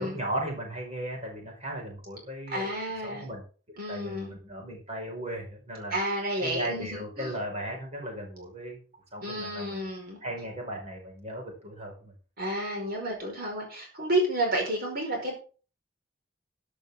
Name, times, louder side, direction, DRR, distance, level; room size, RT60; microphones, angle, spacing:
voice 1, 0.0-2.7 3.0-3.4 3.9-8.8 9.1-9.8 10.2-12.1, right 1 dB, 35° right, 1 dB, 5.4 m, -36 dB
voice 2, 2.5-3.3 3.8-4.3 5.9-7.3 9.2-10.2 12.4-15.3, right 1 dB, 55° right, 1 dB, 5.0 m, -31 dB
13.0 x 11.5 x 3.7 m, 0.37 s
head